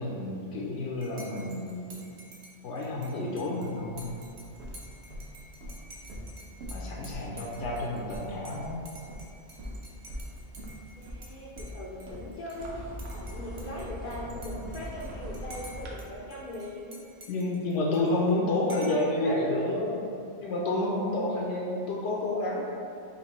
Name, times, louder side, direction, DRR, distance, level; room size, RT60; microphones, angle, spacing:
voice 1, 0.0-2.1 2.6-4.1 6.7-8.8 17.3-20.1 20.4-22.6, left 2 dB, 80° left, -3 dB, 0.9 m, -30 dB
Dishes pots and pans / Cutlery silverware / Chink clink, 1.0-11.3 11.6-12.7 13.0-16.1 16.3-18.3 18.7-19.1, right 1 dB, 45° right, 0.6 m, -50 dB
sound 1, 3.8-15.9, equal, 65° right, 0.9 m, -42 dB
voice 2, 11.0-12.8 13.1-17.0 17.7-19.6, equal, 60° left, -4 dB, 0.6 m, -40 dB
4.4 x 2.6 x 4.1 m, 2.4 s
omnidirectional pair, 1.2 m